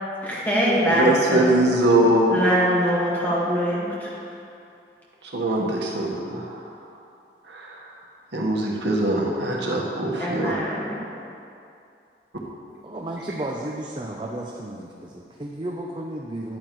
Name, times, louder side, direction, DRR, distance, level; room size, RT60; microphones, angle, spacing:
voice 1, 0.2-1.5 2.3-4.2 10.2-11.1, equal, 10° left, -7 dB, 1.6 m, -23 dB
voice 2, 0.8-2.4 5.2-6.7 7.5-8.0 8.3-10.5, right 1 dB, 85° right, -3 dB, 1.3 m, -22 dB
voice 3, 12.8-16.6, right 1 dB, 25° right, -1 dB, 0.5 m, -33 dB
10.5 x 8.9 x 3.1 m, 2.6 s
head